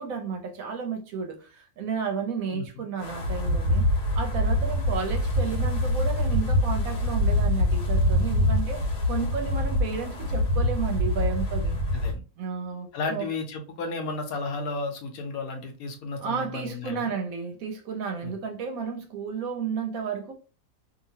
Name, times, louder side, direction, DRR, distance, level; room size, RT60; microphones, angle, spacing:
voice 1, 0.0-3.9 4.1-11.8 12.4-13.3 16.2-20.3, right 5 dB, 70° right, 0.9 m, -32 dB
Wind, 3.0-12.2, left 1 dB, 85° left, 1.4 m, -25 dB
voice 2, 12.9-17.1 18.2-18.3, left 3 dB, 70° left, 1.0 m, -33 dB
2.9 x 2.5 x 2.7 m
omnidirectional pair, 1.7 m